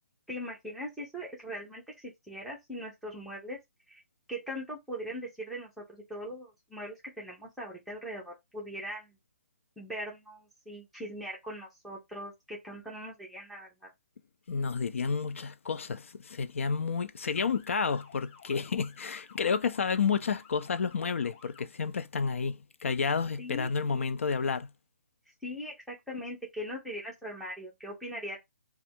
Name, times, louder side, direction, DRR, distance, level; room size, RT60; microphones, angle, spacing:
voice 1, 0.3-1.8 2.3-3.6 3.9-4.0 4.3-9.2 9.8-13.9 23.4-24.0 25.4-28.4, equal, ahead, 0.7 m, -40 dB
voice 2, 14.5-24.7, left 5 dB, 65° left, 0.4 m, -30 dB
Motor vehicle (road) / Siren, 17.3-21.7, left 6 dB, 40° left, 1.6 m, -55 dB
3.3 x 2.3 x 4.3 m
hypercardioid pair, 170°, 8 cm